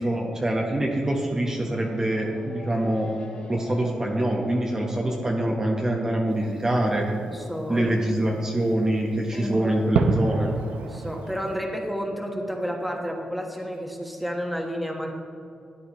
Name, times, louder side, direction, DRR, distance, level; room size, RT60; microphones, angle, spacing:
voice 1, 0.0-3.1 3.5-7.1 7.7-10.5, right 1 dB, 25° right, -1 dB, 1.1 m, -25 dB
Race car auto racing / Accelerating revving vroom, 0.8-6.0, left 1 dB, 65° left, 1.9 m, -44 dB
Fireworks, 6.3-11.6, right 4 dB, 90° right, 0.6 m, -31 dB
voice 2, 7.2-7.9 8.2-8.3 9.3-9.7 10.8-15.1, equal, ahead, 1 dB, 1.4 m, -31 dB
13.0 x 9.3 x 3.1 m, 2.5 s
cardioid pair, 85°, 2 cm